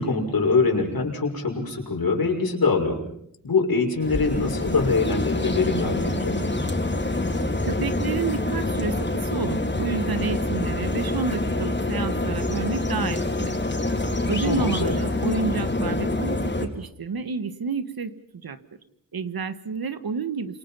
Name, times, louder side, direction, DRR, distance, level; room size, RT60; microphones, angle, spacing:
voice 1, 0.0-3.0 3.4-6.6 14.4-15.0, left 4 dB, 80° left, 2 dB, 6.1 m, -24 dB
sound 1, 4.0-16.7, left 2 dB, 30° left, 4.2 m, -26 dB
voice 2, 7.6-13.5 14.3-18.1 18.4-18.6 19.1-20.6, right 5 dB, 90° right, 11 dB, 1.7 m, -29 dB
29.0 x 27.0 x 5.8 m, 0.73 s
wide cardioid pair, 75°, 35 cm